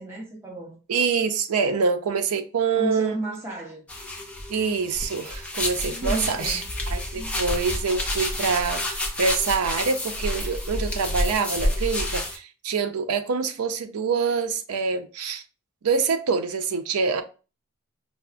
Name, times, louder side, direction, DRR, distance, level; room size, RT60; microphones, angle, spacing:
voice 1, 0.0-0.8 2.7-3.9 5.9-6.7 7.1-7.4, right 2 dB, 10° right, 0.9 m, -33 dB
voice 2, 0.9-3.2 4.5-15.4 15.8-17.2, right 5 dB, 85° right, 0.5 m, -25 dB
sound 1, 3.9-12.4, left 1 dB, 5° left, 0.4 m, -29 dB
4.6 x 2.0 x 2.4 m
head